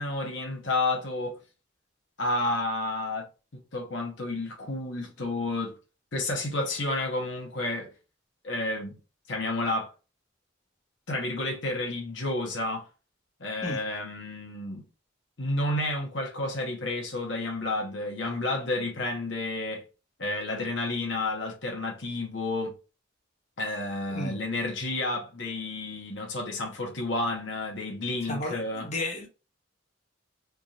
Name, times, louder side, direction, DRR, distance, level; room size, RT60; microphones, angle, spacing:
voice 1, 0.0-1.4 2.2-3.3 3.5-5.7 6.1-7.9 8.4-9.0 9.3-9.9 11.1-12.9 13.4-14.8 15.4-19.8 20.2-22.7 23.6-28.9, left 2 dB, 70° left, 1.0 m, -31 dB
voice 2, 28.2-29.3, left 1 dB, 35° left, 1.0 m, -33 dB
3.4 x 2.8 x 2.5 m
head